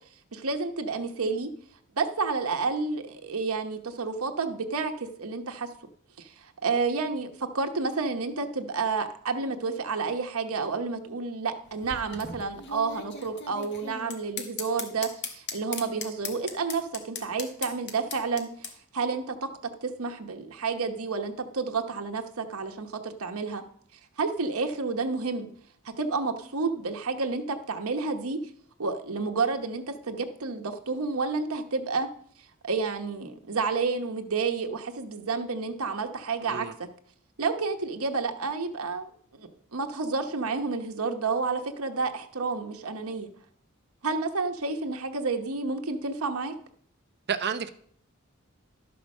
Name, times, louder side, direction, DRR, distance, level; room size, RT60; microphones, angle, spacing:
voice 1, 0.3-1.5 2.0-5.7 6.2-19.5 19.8-23.6 24.2-25.5 25.8-28.4 28.8-32.1 32.6-36.9 37.4-43.3 44.0-46.5, right 4 dB, 90° right, 5 dB, 1.0 m, -30 dB
sound 1, 11.6-18.7, left 5 dB, 55° left, 1.5 m, -38 dB
voice 2, 47.3-47.7, right 7 dB, 50° right, 11 dB, 0.8 m, -30 dB
12.0 x 5.8 x 6.4 m, 0.62 s
head